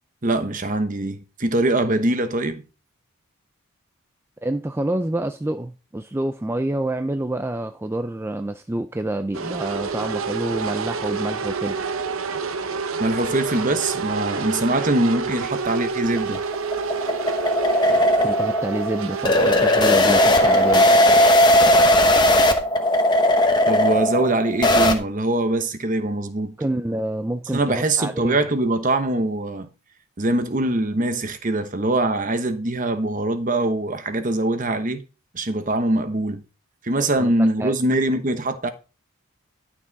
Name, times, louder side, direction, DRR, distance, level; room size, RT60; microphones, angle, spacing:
voice 1, 0.2-2.6 13.0-16.4 23.7-26.5 27.5-29.7 30.2-35.0 35.3-36.4 36.8-38.7, right 2 dB, 35° right, 1.0 m, -23 dB
voice 2, 4.4-11.8 18.2-20.9 26.6-28.4 37.2-37.3 37.6-37.7, right 1 dB, 10° right, 0.3 m, -27 dB
sound 1, 9.3-20.9, right 4 dB, 70° right, 0.8 m, -28 dB
sound 2, 16.0-25.0, left 1 dB, 20° left, 1.0 m, -17 dB
11.5 x 6.2 x 4.0 m
head